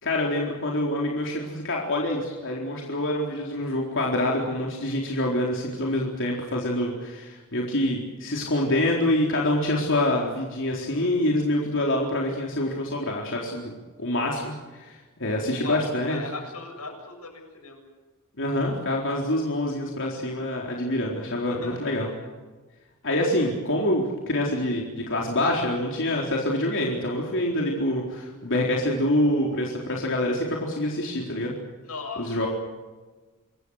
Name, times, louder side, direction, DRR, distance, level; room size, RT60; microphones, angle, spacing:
voice 1, 0.0-13.7 14.0-16.2 18.4-22.1 23.0-31.5 32.2-32.5, left 1 dB, 60° left, -1 dB, 4.1 m, -26 dB
voice 2, 15.6-17.8 21.5-22.2 31.8-32.4, left 3 dB, 90° left, 4 dB, 7.1 m, -38 dB
27.0 x 22.0 x 6.6 m, 1.3 s
head